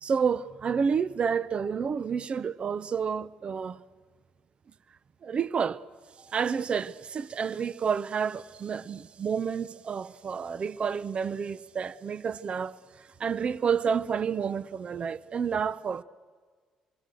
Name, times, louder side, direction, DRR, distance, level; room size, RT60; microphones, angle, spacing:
voice 1, 0.0-3.8 5.2-5.8 6.2-16.0, right 6 dB, 45° right, 0.8 m, -30 dB
27.5 x 24.5 x 7.7 m
hypercardioid pair, 55°, 3 cm